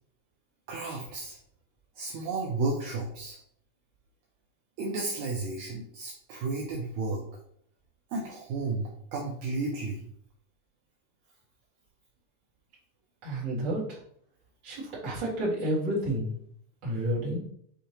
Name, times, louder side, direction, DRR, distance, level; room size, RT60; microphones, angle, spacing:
voice 1, 0.7-1.4 2.0-3.4 4.8-7.2 8.1-10.1, right 3 dB, 80° right, 0 dB, 1.7 m, -33 dB
voice 2, 13.2-14.0 14.6-16.3 16.8-17.4, right 1 dB, 40° right, -7 dB, 1.8 m, -30 dB
6.5 x 2.8 x 2.8 m, 0.65 s
omnidirectional pair, 3.8 m